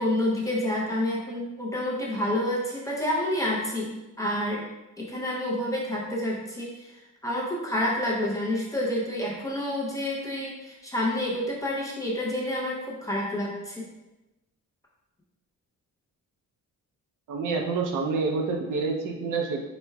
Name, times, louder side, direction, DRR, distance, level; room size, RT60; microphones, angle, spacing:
voice 1, 0.0-4.6 5.0-6.9 7.2-13.9, left 1 dB, 10° left, -4 dB, 0.6 m, -28 dB
voice 2, 17.3-19.6, right 4 dB, 70° right, 1 dB, 0.7 m, -27 dB
4.3 x 4.3 x 2.3 m, 1.0 s
wide cardioid pair, 175°, 32 cm